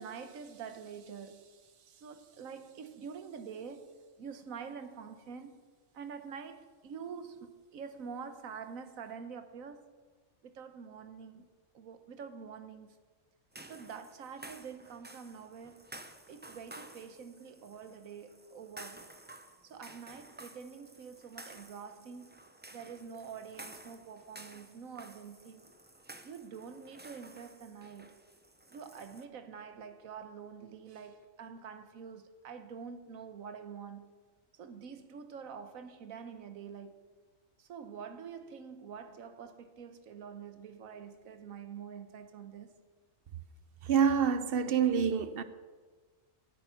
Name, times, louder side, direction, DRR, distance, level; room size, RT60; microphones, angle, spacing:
voice 1, 0.0-5.6 5.9-9.8 10.4-11.5 11.7-13.0 13.7-15.9 16.3-19.1 19.6-22.3 22.7-25.7 26.2-28.2 28.7-34.1 34.6-37.1 37.6-42.7, right 6 dB, 85° right, 1.4 m, -46 dB
sound 1, 13.5-29.2, right 2 dB, 15° right, 0.3 m, -53 dB
voice 2, 43.8-45.4, right 7 dB, 55° right, 0.8 m, -27 dB
10.5 x 8.3 x 9.0 m
omnidirectional pair, 1.4 m